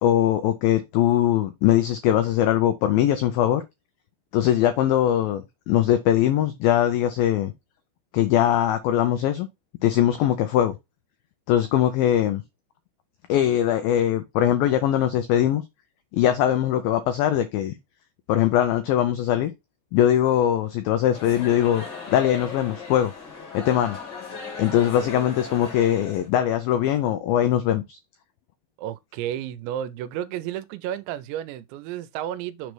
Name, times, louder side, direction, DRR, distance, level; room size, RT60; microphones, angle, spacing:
voice 1, 0.0-3.6 4.3-7.5 8.1-9.5 9.8-10.7 11.5-12.4 13.3-15.6 16.1-17.8 18.3-19.5 19.9-23.1 23.5-24.0 24.6-28.0, left 11 dB, 90° left, 2.0 m, -21 dB
sound 1, 21.1-26.3, left 5 dB, 35° left, 1.8 m, -37 dB
voice 2, 28.8-32.7, right 11 dB, 90° right, 2.9 m, -32 dB
6.9 x 3.1 x 6.0 m
omnidirectional pair, 5.1 m